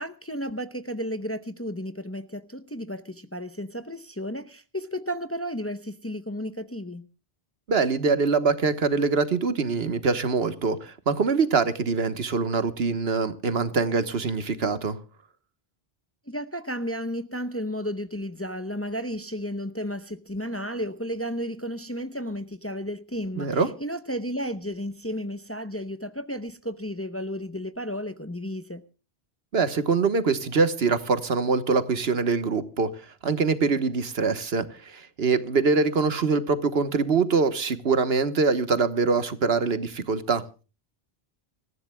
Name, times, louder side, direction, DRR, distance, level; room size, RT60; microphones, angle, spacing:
voice 1, 0.0-7.1 16.3-28.8, equal, 15° left, 0.7 m, -33 dB
voice 2, 7.7-15.0 23.4-23.7 29.5-40.4, right 4 dB, 75° right, 1.4 m, -24 dB
26.0 x 14.5 x 2.2 m
omnidirectional pair, 1.1 m